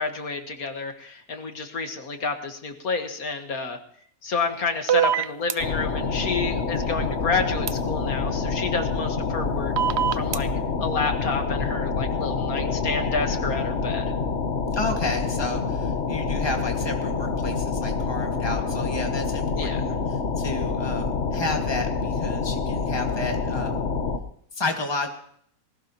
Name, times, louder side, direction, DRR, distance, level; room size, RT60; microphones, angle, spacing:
voice 1, 0.0-3.8 4.2-9.7 10.1-10.5 10.8-14.1 19.6-19.8, left 4 dB, 75° left, 5 dB, 2.1 m, -29 dB
sound 1, 4.9-5.5 7.7-7.8 9.8-10.4, right 9 dB, 55° right, 0.9 m, -22 dB
sound 2, 5.6-24.2, left 4 dB, 55° left, 1.4 m, -27 dB
voice 2, 14.7-23.8 24.5-25.1, left 2 dB, 15° left, 3 dB, 1.9 m, -31 dB
20.0 x 17.5 x 3.0 m, 0.64 s
omnidirectional pair, 1.5 m